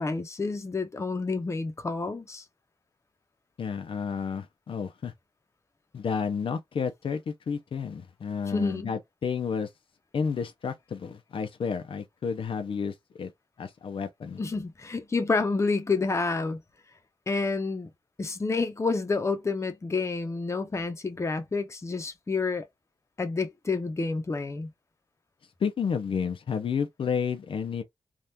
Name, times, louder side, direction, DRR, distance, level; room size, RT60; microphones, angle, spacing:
voice 1, 0.0-2.4 8.5-8.9 14.4-16.6 17.3-17.9 18.2-22.6 23.2-24.7, left 3 dB, 30° left, 0.7 m, -29 dB
voice 2, 3.6-5.1 5.9-9.7 10.1-13.3 13.6-14.4 25.6-27.8, left 6 dB, 75° left, 0.6 m, -31 dB
3.5 x 2.4 x 2.8 m
wide cardioid pair, 110°, 9 cm